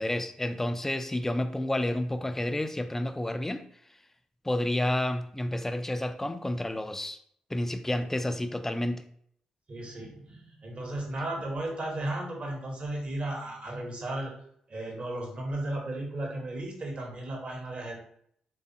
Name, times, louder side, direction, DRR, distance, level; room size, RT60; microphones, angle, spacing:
voice 1, 0.0-3.6 4.4-7.2 7.5-9.0, left 1 dB, 15° left, 9 dB, 0.3 m, -30 dB
voice 2, 9.7-14.3 14.7-18.0, right 1 dB, 45° right, 0 dB, 1.0 m, -35 dB
3.4 x 2.4 x 2.6 m, 0.66 s
hypercardioid pair, 40°, 3 cm